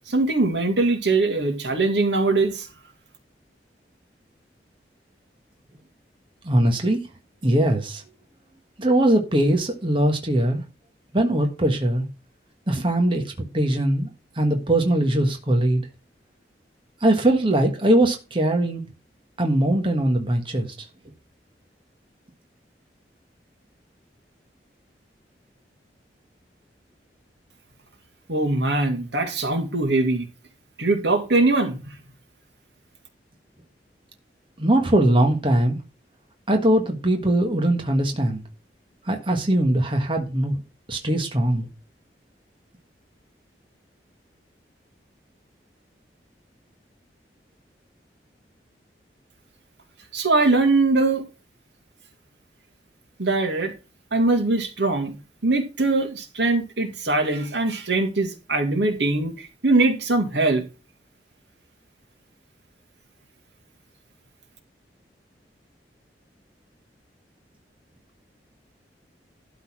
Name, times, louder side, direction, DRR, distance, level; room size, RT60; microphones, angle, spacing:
voice 1, 0.1-2.7 28.3-30.3 30.8-31.8 50.1-51.2 53.2-53.7 54.1-55.1 55.4-60.6, right 2 dB, 80° right, 2.2 m, -22 dB
voice 2, 6.4-7.0 7.4-8.0 8.8-10.6 11.1-12.0 12.7-14.1 14.3-15.8 17.0-18.8 19.4-20.9 34.6-35.8 36.5-38.4 39.0-40.6 40.9-41.7, right 1 dB, 30° right, 1.5 m, -21 dB
12.0 x 4.1 x 6.0 m
head